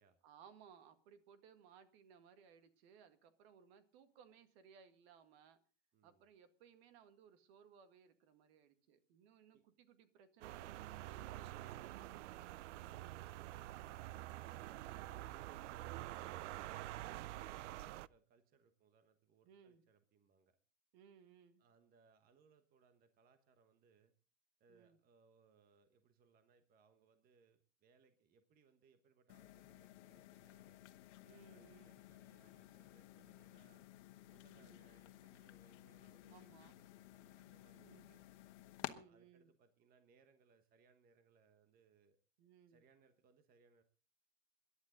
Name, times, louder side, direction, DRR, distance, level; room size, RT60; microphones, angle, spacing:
voice 1, 0.2-5.6 6.0-12.5 19.4-19.8 20.9-21.6 24.7-25.0 31.2-31.9 33.2-33.4 34.5-34.9 36.3-36.7 37.7-38.1 38.8-39.5 42.4-42.8, right 7 dB, 55° right, 10 dB, 2.1 m, -64 dB
voice 2, 5.9-6.2 9.5-9.6 17.3-20.6 21.6-24.1 24.6-30.8 31.3-33.8 34.3-38.2 38.8-42.2 42.7-43.8, right 5 dB, 25° right, 9 dB, 1.2 m, -71 dB
sound 1, 10.4-18.1, right 15 dB, 75° right, 0.6 m, -47 dB
sound 2, 29.3-38.9, left 15 dB, 70° left, 1.4 m, -55 dB
22.0 x 11.5 x 3.9 m, 0.35 s
supercardioid pair, 150°, 37 cm